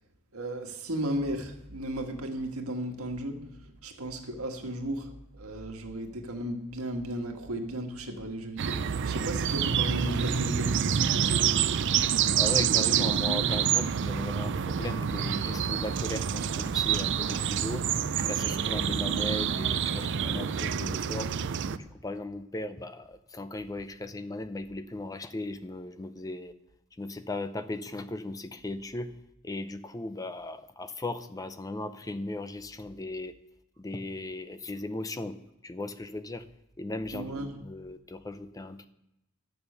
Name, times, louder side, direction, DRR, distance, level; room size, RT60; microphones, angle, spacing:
voice 1, 0.3-11.9 37.1-37.5, right 1 dB, 85° right, 3 dB, 1.6 m, -35 dB
sound 1, 8.6-21.8, right 8 dB, 60° right, 0.5 m, -27 dB
voice 2, 12.3-17.8 18.2-21.3 21.7-26.5 27.0-29.1 29.4-33.3 33.8-35.4 35.6-36.4 36.8-37.3 37.6-38.9, left 2 dB, 15° left, 11 dB, 0.4 m, -37 dB
10.5 x 7.0 x 6.8 m, 0.90 s
head